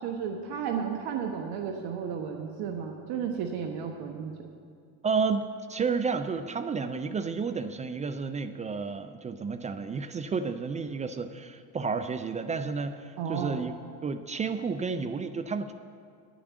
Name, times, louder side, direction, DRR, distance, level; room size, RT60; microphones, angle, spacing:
voice 1, 0.0-4.3 13.2-13.6, right 7 dB, 50° right, 3 dB, 1.2 m, -33 dB
voice 2, 5.0-5.4 5.7-13.7 14.0-15.7, right 5 dB, 15° right, 8 dB, 0.4 m, -31 dB
10.0 x 9.3 x 8.2 m, 2.2 s
figure-of-eight pair, 70°, 49 cm